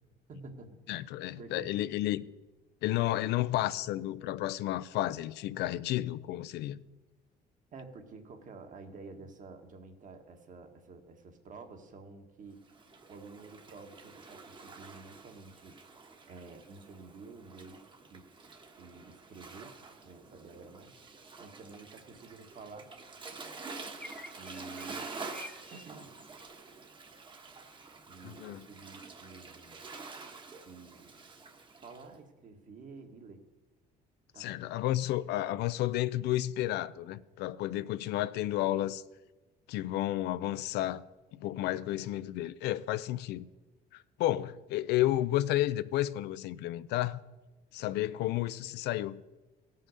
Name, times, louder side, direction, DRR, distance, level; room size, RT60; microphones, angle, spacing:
voice 1, 0.3-1.1 1.4-1.7 7.7-12.6 13.1-17.8 18.1-18.3 18.8-19.8 20.0-22.9 24.3-25.3 25.7-26.1 28.1-29.9 30.6-31.2 31.8-33.4 34.3-34.5, right 4 dB, 50° right, 1.6 m, -50 dB
voice 2, 0.9-2.2 2.8-6.8 28.2-28.7 34.4-39.0 39.7-41.0 41.4-43.5 43.9-47.2 47.7-49.2, left 14 dB, 80° left, 0.5 m, -32 dB
Waves surf, 12.6-32.1, right 4 dB, 30° right, 1.2 m, -48 dB
sound 1, 24.0-26.5, left 1 dB, 5° left, 1.0 m, -50 dB
16.5 x 5.6 x 6.5 m
cardioid pair, 110°, 17 cm